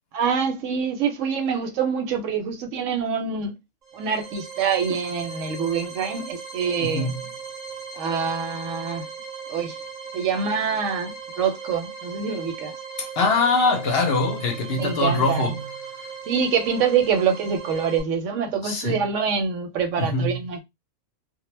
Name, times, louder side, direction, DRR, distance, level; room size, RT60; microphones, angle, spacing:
voice 1, 0.1-3.5 3.9-7.1 8.0-9.1 9.5-9.8 10.1-12.7 14.8-15.4 16.3-20.6, right 6 dB, 80° right, 0.9 m, -25 dB
sound 1, 3.8-18.0, right 5 dB, 40° right, 0.6 m, -38 dB
voice 2, 6.8-7.3 13.0-15.7 16.0-16.1 18.6-19.0 20.0-20.4, left 3 dB, 60° left, 0.7 m, -23 dB
2.2 x 2.1 x 3.1 m
omnidirectional pair, 1.3 m